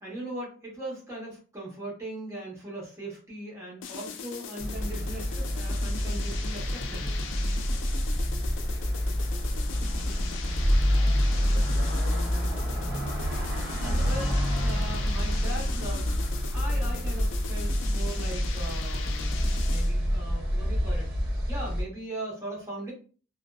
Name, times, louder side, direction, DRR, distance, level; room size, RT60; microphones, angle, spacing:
voice 1, 0.0-7.2 14.0-16.1 16.5-21.1 21.5-22.9, right 1 dB, 15° right, -4 dB, 1.0 m, -39 dB
sound 1, 3.8-20.0, left 6 dB, 80° left, 0.3 m, -40 dB
sound 2, 4.6-21.8, equal, 55° right, 0.8 m, -27 dB
voice 2, 9.5-10.3 10.9-12.8, right 2 dB, 90° right, 1 dB, 0.7 m, -47 dB
2.6 x 2.3 x 2.2 m, 0.38 s
head